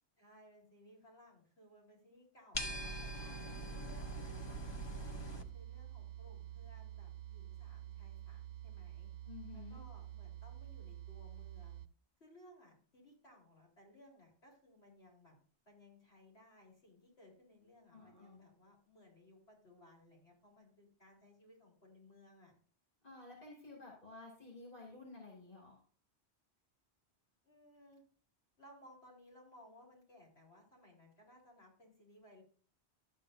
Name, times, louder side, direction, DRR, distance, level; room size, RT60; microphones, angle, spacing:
voice 1, 0.2-4.8 5.3-9.1 9.5-11.8 12.2-15.4 15.7-22.5 27.4-28.0 28.6-32.4, left 1 dB, 70° left, -3 dB, 4.4 m, -62 dB
sound 1, 2.5-5.4, right 1 dB, 25° left, 0.9 m, -42 dB
sound 2, 3.9-11.9, right 12 dB, 60° right, 0.7 m, -49 dB
voice 2, 9.2-9.8 17.9-18.4 23.0-25.8, left 3 dB, 50° left, -4 dB, 3.2 m, -52 dB
12.5 x 9.2 x 2.7 m, 0.44 s
omnidirectional pair, 1.1 m